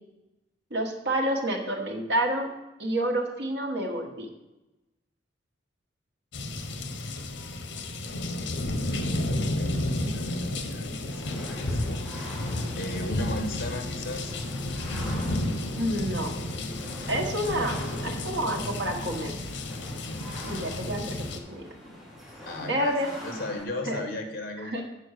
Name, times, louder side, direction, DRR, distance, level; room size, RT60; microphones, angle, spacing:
voice 1, 0.7-2.5 2.8-4.3 15.8-16.3 17.1-19.4 20.4-21.6 22.6-23.1 23.9-24.0 24.6-24.8, right 1 dB, 65° right, 1 dB, 1.4 m, -29 dB
sound 1, 6.3-21.4, left 1 dB, 75° left, 0.9 m, -32 dB
voice 2, 8.9-12.0 12.4-14.3 22.5-24.8, left 1 dB, 50° left, 5 dB, 1.4 m, -37 dB
sound 2, 11.1-23.6, equal, ahead, 1.5 m, -44 dB
8.7 x 4.4 x 6.5 m, 0.98 s
head